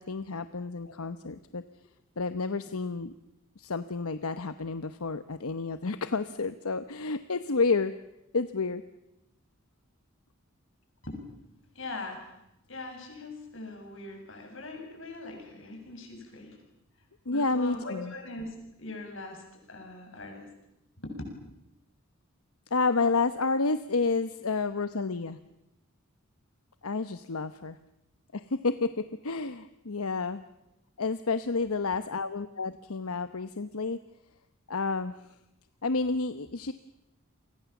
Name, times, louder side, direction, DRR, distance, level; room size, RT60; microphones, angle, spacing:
voice 1, 0.0-1.6 2.2-3.1 3.6-7.9 8.3-8.8 17.3-18.1 22.7-25.4 26.8-27.8 28.3-30.4 31.0-34.0 34.7-35.1 35.8-36.7, left 3 dB, 85° left, 11 dB, 1.0 m, -30 dB
voice 2, 11.7-12.3 12.7-16.6 17.3-20.5 21.0-21.2, left 2 dB, 60° left, 3 dB, 7.6 m, -41 dB
30.0 x 24.0 x 7.2 m, 0.89 s
head